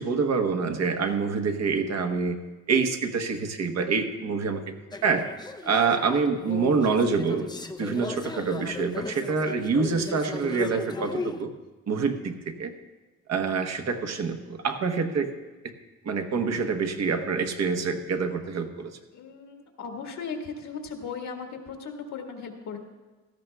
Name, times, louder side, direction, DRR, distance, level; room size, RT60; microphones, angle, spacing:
voice 1, 0.0-2.4 2.7-4.6 5.0-5.3 5.6-7.5 7.8-11.5 11.9-12.7 13.3-15.3 15.6-15.7 16.0-18.9, right 5 dB, 60° right, 6 dB, 1.1 m, -26 dB
voice 2, 4.0-4.4 7.8-8.1 11.8-12.1 19.1-22.8, left 5 dB, 65° left, 2 dB, 1.6 m, -38 dB
sound 1, 4.9-11.4, left 3 dB, 15° left, 0.5 m, -36 dB
16.5 x 13.5 x 2.3 m, 1.2 s
cardioid pair, 90°, 30 cm